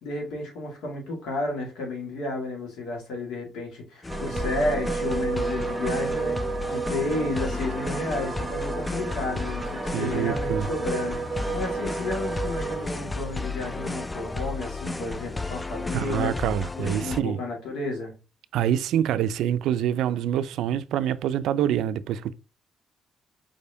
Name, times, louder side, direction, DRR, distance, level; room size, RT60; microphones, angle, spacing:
voice 1, 0.0-16.3 16.7-18.1, left 2 dB, 90° left, 1.7 m, -32 dB
sound 1, 4.0-17.2, left 3 dB, 15° left, 0.3 m, -33 dB
sound 2, 4.1-12.9, right 5 dB, 35° right, 0.7 m, -32 dB
voice 2, 9.9-10.7 15.9-17.4 18.5-22.3, right 10 dB, 85° right, 0.3 m, -26 dB
5.0 x 3.4 x 2.6 m
cardioid pair, 90°, 0 cm